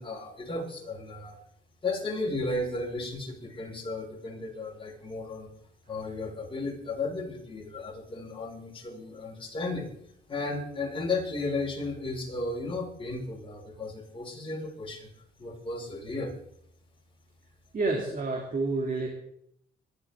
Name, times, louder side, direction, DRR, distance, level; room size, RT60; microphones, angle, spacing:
voice 1, 0.0-1.4 1.8-5.5 5.9-9.9 10.3-15.1 15.4-16.3, left 2 dB, 25° left, -1 dB, 5.2 m, -34 dB
voice 2, 17.7-19.1, right 3 dB, 45° right, 1 dB, 2.8 m, -29 dB
23.0 x 12.0 x 3.7 m, 0.71 s
cardioid pair, 90°, 20 cm